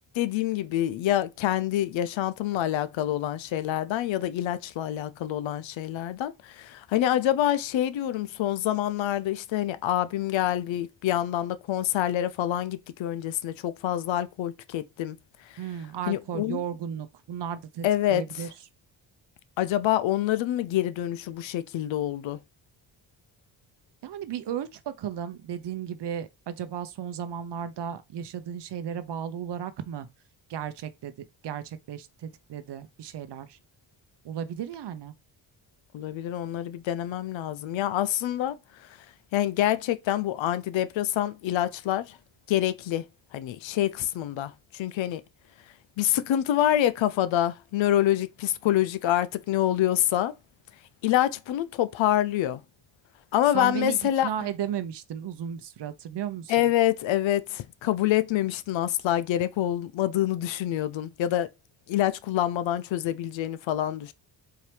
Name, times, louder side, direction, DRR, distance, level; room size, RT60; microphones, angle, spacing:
voice 1, 0.1-15.2 16.1-16.6 17.8-18.4 19.6-22.4 35.9-38.6 39.3-42.2 42.5-43.1 43.3-45.2 46.0-50.3 51.0-52.6 53.3-54.3 56.5-61.5 61.9-64.1, left 12 dB, 70° left, 0.6 m, -26 dB
voice 2, 15.6-18.5 24.0-30.1 30.5-31.1 31.4-33.6 34.2-35.1 53.5-56.7, right 9 dB, 60° right, 0.7 m, -35 dB
4.4 x 2.8 x 3.3 m
cardioid pair, 70°, 48 cm